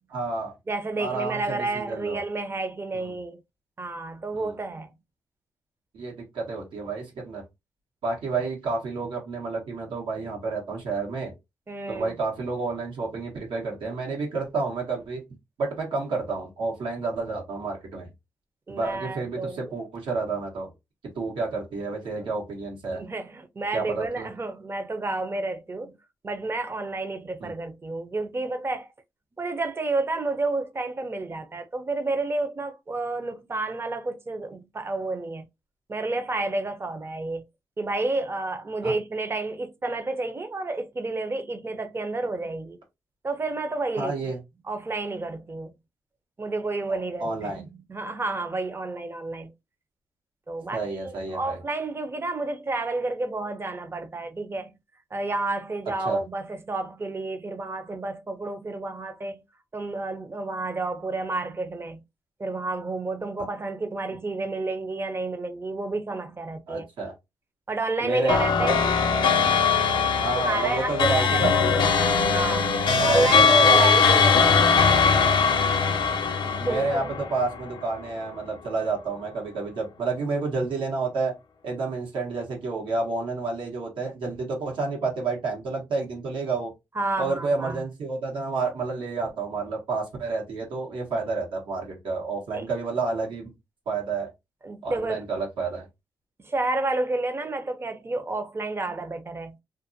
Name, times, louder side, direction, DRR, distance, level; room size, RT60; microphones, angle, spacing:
voice 1, 0.1-0.5 1.0-2.2 2.9-3.1 4.3-4.6 5.9-7.4 8.0-11.3 11.9-15.2 15.6-18.1 18.7-20.7 21.1-23.0 23.7-24.3 27.4-27.5 38.8-38.9 44.0-44.4 47.2-47.6 50.7-51.6 56.0-56.2 66.7-67.1 68.0-68.7 70.2-71.9 72.9-74.4 75.8-76.0 76.6-81.3 81.6-86.7 87.2-93.5 93.9-94.3 94.8-95.9, right 3 dB, 85° right, 1.2 m, -30 dB
voice 2, 0.7-3.4 3.8-4.9 11.7-12.1 18.7-19.6 22.2-22.3 22.9-26.0 26.2-28.9 29.4-35.5 35.9-37.4 37.8-42.8 43.2-44.1 44.7-45.7 46.4-49.5 50.5-54.7 55.1-59.4 59.7-62.0 62.4-66.9 67.7-68.9 70.3-71.6 72.3-74.8 76.4-77.1 87.0-87.8 92.5-92.6 94.6-95.2 96.4-99.6, right 2 dB, 30° right, 0.6 m, -30 dB
sound 1, 68.3-77.9, left 5 dB, 75° left, 0.5 m, -21 dB
2.5 x 2.5 x 2.6 m
cardioid pair, 70°, 8 cm